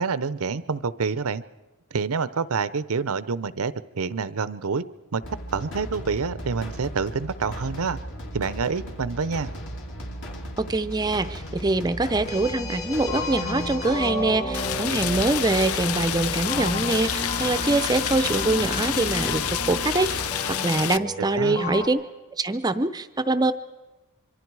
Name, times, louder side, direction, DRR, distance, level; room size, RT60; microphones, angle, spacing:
voice 1, 0.0-1.4 1.9-4.8 5.1-5.2 5.5-8.0 8.3-9.5 21.3-21.6, right 5 dB, 75° right, 16 dB, 0.7 m, -27 dB
sound 1, 5.2-20.3, equal, 55° left, 3.1 m, -37 dB
voice 2, 10.6-22.0 22.3-23.5, right 2 dB, 20° right, 11 dB, 0.6 m, -24 dB
sound 2, 12.1-21.9, left 1 dB, 30° left, 2.8 m, -33 dB
Rain, 14.5-21.0, left 10 dB, 75° left, 0.6 m, -28 dB
25.5 x 24.0 x 4.7 m, 1.1 s
head